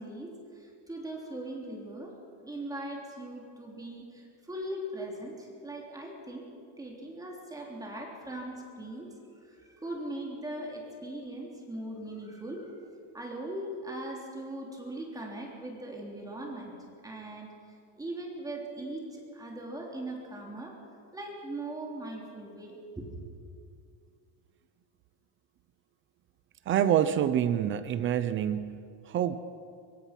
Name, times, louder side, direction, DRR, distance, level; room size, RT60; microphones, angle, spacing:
voice 1, 0.0-2.1 2.4-9.1 9.4-12.8 13.1-17.5 17.9-20.7 21.1-23.1, right 1 dB, 10° right, -1 dB, 3.4 m, -40 dB
voice 2, 26.7-29.4, right 10 dB, 30° right, 12 dB, 0.7 m, -27 dB
24.5 x 23.5 x 6.0 m, 2.3 s
cardioid pair, 165°, 42 cm